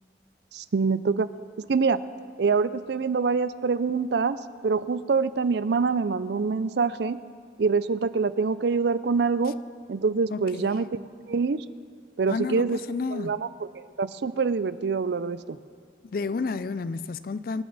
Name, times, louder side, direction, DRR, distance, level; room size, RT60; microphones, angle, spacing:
voice 1, 0.5-1.3 1.6-2.0 2.4-7.2 7.6-9.5 9.9-11.0 11.3-11.6 12.2-12.8 13.1-13.5 13.7-15.6, right 4 dB, 65° right, 0.4 m, -25 dB
voice 2, 10.3-10.7 12.3-13.4 16.0-17.6, left 4 dB, 50° left, 0.4 m, -31 dB
25.5 x 9.9 x 4.1 m
head